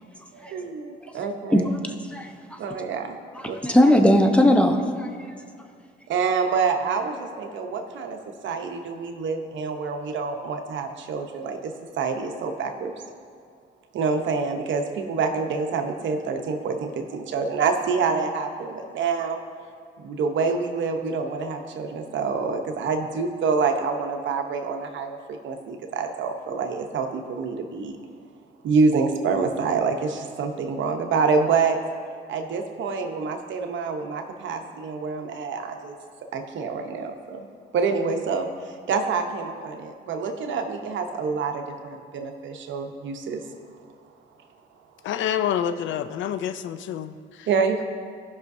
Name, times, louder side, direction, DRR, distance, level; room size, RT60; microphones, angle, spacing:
voice 1, 0.3-1.7 2.6-3.2 3.4-3.6 6.1-8.2 8.4-12.9 13.9-19.4 20.0-28.0 28.6-31.8 32.3-36.0 36.3-37.4 37.7-38.5 38.9-43.4 47.5-47.8, right 5 dB, 70° right, 5 dB, 0.9 m, -27 dB
voice 2, 3.4-5.1, left 1 dB, 5° left, 4 dB, 0.8 m, -18 dB
voice 3, 45.0-47.5, left 9 dB, 70° left, 12 dB, 0.4 m, -28 dB
16.0 x 5.7 x 2.7 m, 2.2 s
cardioid pair, 90°, 20 cm